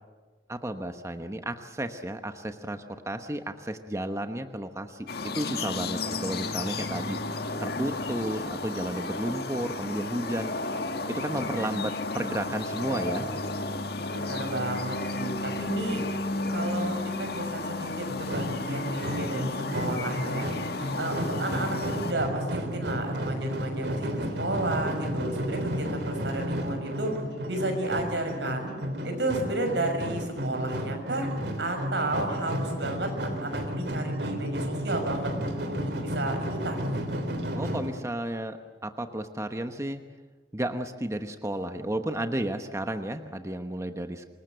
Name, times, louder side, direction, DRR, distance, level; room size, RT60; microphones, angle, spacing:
voice 1, 0.5-7.2 7.6-10.5 11.1-13.3 37.5-40.0 40.5-44.3, right 1 dB, 15° right, 7 dB, 1.1 m, -33 dB
sound 1, 5.1-22.1, left 2 dB, 65° left, 1.8 m, -33 dB
voice 2, 14.0-16.1 16.5-20.5 21.0-27.2 27.5-28.7 29.0-31.3 31.6-35.3 35.7-37.2, right 2 dB, 85° right, 4 dB, 6.1 m, -32 dB
sound 2, 18.1-38.0, equal, 70° right, 3.3 m, -33 dB
26.5 x 21.5 x 7.9 m, 1.4 s
head